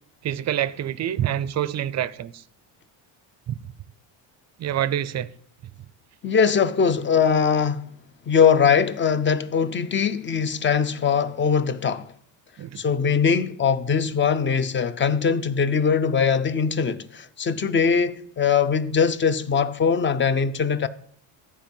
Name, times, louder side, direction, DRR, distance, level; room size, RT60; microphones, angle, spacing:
voice 1, 0.2-2.4 3.5-3.6 4.6-5.3 12.6-12.8, right 11 dB, 35° right, 0.4 m, -26 dB
voice 2, 6.2-7.9 8.3-12.1 12.8-20.9, left 6 dB, 25° left, 0.5 m, -21 dB
13.0 x 4.7 x 5.3 m
cardioid pair, 115°, 49 cm